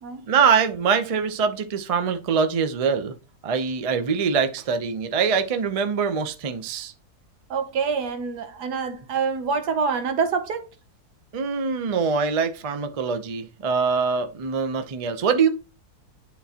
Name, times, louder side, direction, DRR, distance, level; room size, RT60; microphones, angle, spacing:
voice 1, 0.3-3.1 3.4-6.9 11.3-15.5, right 6 dB, 60° right, 0.3 m, -23 dB
voice 2, 7.5-10.7, right 5 dB, 85° right, 1.5 m, -26 dB
10.5 x 3.8 x 2.8 m
omnidirectional pair, 1.7 m